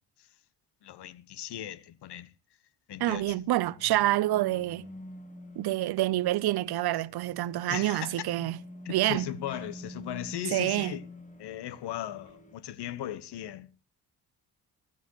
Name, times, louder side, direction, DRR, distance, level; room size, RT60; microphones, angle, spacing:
voice 1, 0.8-2.3 2.9-3.4 7.7-8.3 8.8-11.1 11.4-13.7, left 12 dB, 60° left, 1.0 m, -38 dB
voice 2, 3.0-4.9 5.6-8.6 8.9-9.3 10.5-10.9, right 15 dB, 55° right, 0.7 m, -27 dB
sound 1, 3.1-12.6, equal, 15° left, 1.7 m, -47 dB
15.5 x 15.0 x 3.1 m
hypercardioid pair, 55°, 46 cm